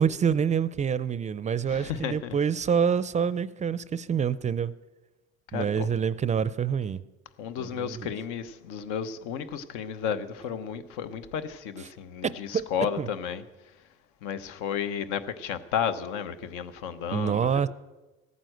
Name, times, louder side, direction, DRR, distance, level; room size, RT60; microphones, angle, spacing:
voice 1, 0.0-4.7 5.5-7.0 7.6-8.1 11.8-11.9 12.2-13.1 17.1-17.7, right 7 dB, 25° right, 0.4 m, -27 dB
voice 2, 1.7-2.3 5.5-5.9 7.4-13.4 14.2-17.7, left 8 dB, 85° left, 1.0 m, -33 dB
15.0 x 9.4 x 7.8 m
cardioid pair, 125°, 29 cm